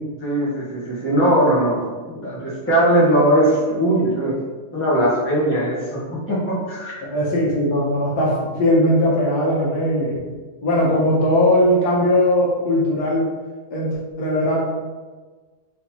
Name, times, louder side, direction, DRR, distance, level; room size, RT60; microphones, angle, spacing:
voice 1, 0.2-4.4 4.7-7.0, right 1 dB, 10° left, -8 dB, 1.1 m, -20 dB
voice 2, 7.0-10.2 10.6-13.3 13.7-14.6, left 1 dB, 75° left, -4 dB, 1.5 m, -19 dB
3.9 x 3.6 x 3.0 m, 1.3 s
omnidirectional pair, 1.7 m